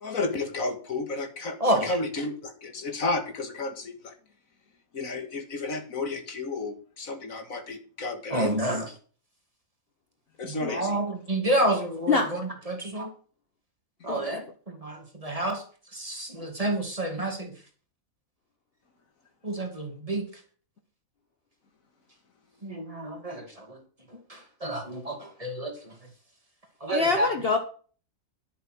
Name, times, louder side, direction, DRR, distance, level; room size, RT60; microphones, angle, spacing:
voice 1, 0.0-1.6 1.8-4.1 4.9-8.6 10.4-11.0, left 3 dB, 70° left, 7 dB, 2.1 m, -32 dB
voice 2, 1.6-2.0 8.3-8.9 10.4-13.1 14.0-15.6 15.9-17.5 19.4-20.3 22.6-23.8 24.3-25.9 26.8-27.3, right 1 dB, 25° right, 3 dB, 2.4 m, -29 dB
voice 3, 26.9-27.6, left 4 dB, 45° left, 5 dB, 1.3 m, -25 dB
11.5 x 7.0 x 6.1 m, 0.40 s
omnidirectional pair, 1.5 m